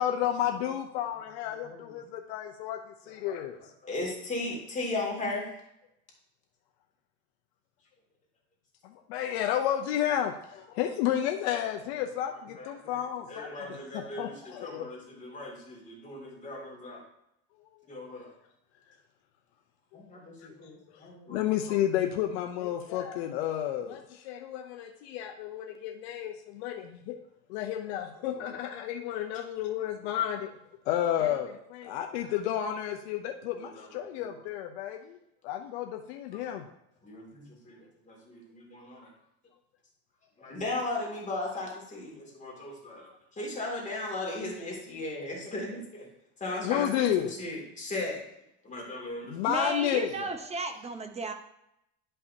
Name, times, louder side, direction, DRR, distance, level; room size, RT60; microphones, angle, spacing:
voice 1, 0.0-2.8 3.1-3.6 9.1-13.5 13.9-14.9 20.4-21.0 21.3-27.2 27.5-30.5 30.9-35.2 35.4-36.7 46.6-47.3 49.3-50.3, left 11 dB, 85° left, 3 dB, 0.7 m, -31 dB
voice 2, 1.5-2.0 3.2-3.4 3.8-5.6 12.5-17.0 17.9-18.3 19.9-21.8 28.4-28.5 33.6-34.3 36.3-36.4 37.0-39.1 40.4-46.1 46.4-48.2 48.6-49.5, left 2 dB, 25° left, -2 dB, 2.6 m, -37 dB
voice 3, 49.5-51.3, right 3 dB, 20° right, 6 dB, 0.9 m, -34 dB
10.5 x 5.5 x 2.8 m, 0.80 s
supercardioid pair, 115°, 31 cm